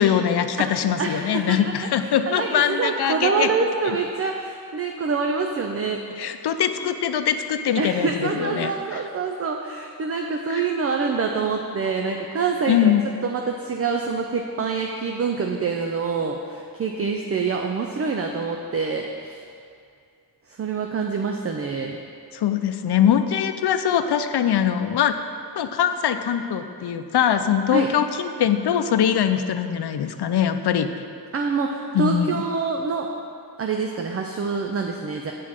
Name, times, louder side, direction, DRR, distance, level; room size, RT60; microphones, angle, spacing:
voice 1, 0.0-3.5 6.2-9.0 10.5-10.7 12.7-13.0 22.3-25.1 25.6-30.9 31.9-32.4, left 9 dB, 90° left, 9 dB, 0.6 m, -22 dB
voice 2, 1.0-1.8 2.3-6.0 7.8-12.9 13.2-19.4 20.6-22.0 27.7-27.9 31.3-33.1 33.6-35.3, right 4 dB, 40° right, 2 dB, 0.5 m, -26 dB
8.4 x 4.6 x 7.4 m, 2.4 s
wide cardioid pair, 170°, 38 cm